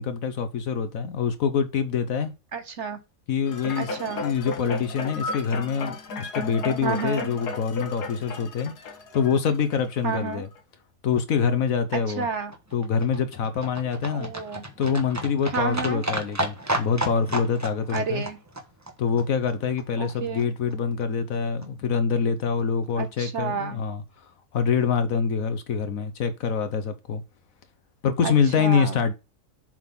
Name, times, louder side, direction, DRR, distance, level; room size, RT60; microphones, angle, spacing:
voice 1, 0.0-2.3 3.3-10.5 11.0-12.3 12.7-14.3 14.8-18.2 19.0-27.2 28.0-29.1, left 6 dB, 65° left, 1.2 m, -25 dB
voice 2, 2.5-3.0 3.8-4.2 6.8-7.3 10.0-10.4 11.9-12.5 14.1-14.6 15.5-16.0 17.9-18.4 20.0-20.5 23.0-23.8 28.2-28.3 28.6-29.0, right 5 dB, 50° right, 1.1 m, -30 dB
sound 1, 3.5-10.0 10.6-10.7, left 3 dB, 80° left, 1.8 m, -34 dB
Livestock farm animals working animals, 11.9-20.1 20.4-20.5 20.7-20.8 21.0-21.1 21.3-21.4 21.6-21.7 21.9-22.0 22.3-22.4 22.6-22.7, right 1 dB, 10° right, 1.0 m, -33 dB
7.4 x 3.9 x 5.4 m
omnidirectional pair, 1.7 m